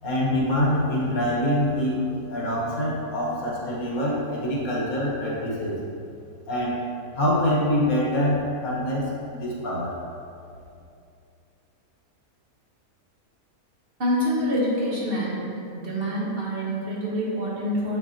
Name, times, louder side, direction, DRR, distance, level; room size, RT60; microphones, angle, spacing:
voice 1, 0.0-5.8 6.5-6.8 7.1-10.0, left 1 dB, 75° left, -5 dB, 1.7 m, -25 dB
voice 2, 14.0-15.4 15.7-18.0, equal, 45° right, -6 dB, 1.2 m, -26 dB
6.7 x 6.1 x 2.8 m, 2.5 s
omnidirectional pair, 1.5 m